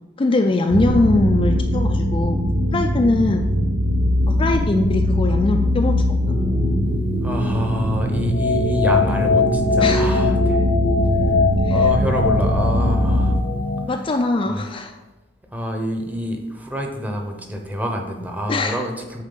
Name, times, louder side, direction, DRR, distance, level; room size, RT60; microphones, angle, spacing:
voice 1, 0.2-2.4 2.7-3.4 4.3-6.0 6.3-6.4 9.8-10.2 11.6-11.8 13.9-14.9 18.5-18.8, left 2 dB, 30° left, 4 dB, 0.3 m, -21 dB
sound 1, 0.7-13.4, equal, 85° right, 0.6 m, -21 dB
sound 2, 6.2-13.9, left 3 dB, 80° left, 1.1 m, -22 dB
voice 2, 7.2-10.6 11.7-13.4 14.5-14.7 15.5-19.2, equal, 10° right, 2 dB, 0.8 m, -27 dB
8.8 x 3.6 x 3.9 m, 1.1 s
head